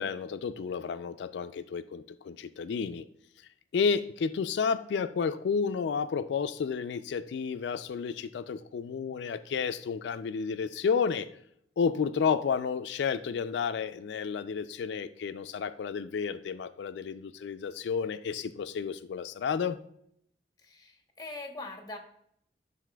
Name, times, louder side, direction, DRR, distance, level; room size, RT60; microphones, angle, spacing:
voice 1, 0.0-3.0 3.7-11.3 11.8-19.8, left 6 dB, 80° left, 11 dB, 0.3 m, -31 dB
voice 2, 20.6-22.0, left 2 dB, 20° left, 3 dB, 0.9 m, -42 dB
11.0 x 4.0 x 2.2 m, 0.71 s
head